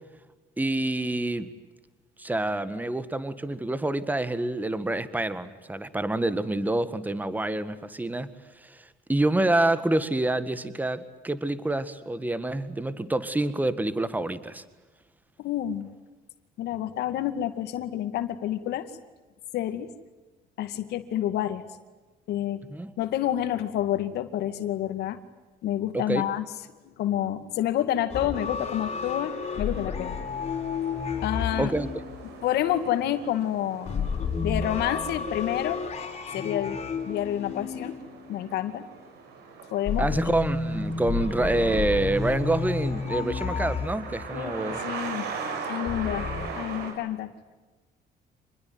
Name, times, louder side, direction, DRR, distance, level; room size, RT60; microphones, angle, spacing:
voice 1, 0.6-1.5 2.2-8.3 8.6-8.8 9.1-14.6 22.7-22.9 25.9-26.2 31.6-31.9 40.0-44.8, right 2 dB, 10° right, 14 dB, 1.8 m, -27 dB
voice 2, 15.4-15.9 16.6-18.9 19.5-19.9 20.6-21.6 22.3-22.6 23.0-25.2 25.6-26.4 26.8-30.2 31.2-31.7 32.4-34.1 34.4-35.8 36.3-36.8 37.1-37.9 38.3-38.9 39.7-40.2 44.3-45.3 45.7-46.3 46.6-47.3, left 12 dB, 75° left, 10 dB, 2.3 m, -28 dB
sound 1, 28.1-32.7 33.9-38.6 39.9-44.5 45.9-46.5, left 5 dB, 40° left, 5.1 m, -31 dB
sound 2, 29.2-46.9, right 5 dB, 80° right, 6.5 m, -41 dB
27.5 x 21.0 x 9.5 m, 1.2 s
cardioid pair, 110°, 17 cm